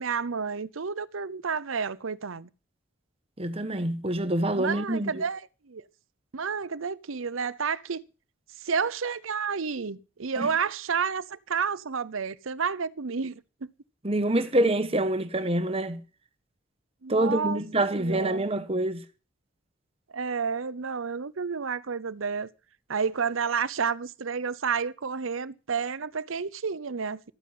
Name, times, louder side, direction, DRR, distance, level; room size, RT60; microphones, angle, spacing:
voice 1, 0.0-2.5 4.5-5.8 6.3-8.0 8.6-13.7 17.0-18.5 20.1-22.5 22.9-27.3, right 5 dB, 80° right, 0.7 m, -30 dB
voice 2, 3.4-5.2 10.4-10.5 14.0-16.0 17.1-19.0, right 1 dB, 30° right, 1.2 m, -26 dB
13.0 x 9.3 x 7.7 m
head